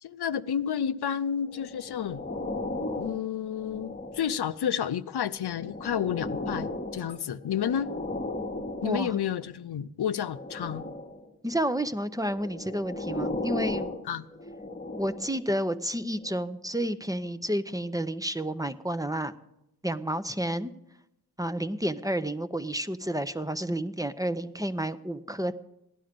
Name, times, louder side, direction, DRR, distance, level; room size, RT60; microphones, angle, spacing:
voice 1, 0.0-2.2 3.0-7.9 8.8-10.8 14.1-14.2, left 8 dB, 90° left, 0.6 m, -30 dB
sound 1, 1.5-4.6 5.2-9.4 10.2-11.3 12.1-15.5 16.2-16.3, left 2 dB, 25° left, 1.2 m, -36 dB
voice 2, 8.8-9.1 11.4-13.9 15.0-19.4 19.8-20.7 21.4-25.6, right 1 dB, 10° right, 0.7 m, -30 dB
16.5 x 11.0 x 5.2 m
wide cardioid pair, 60°, 38 cm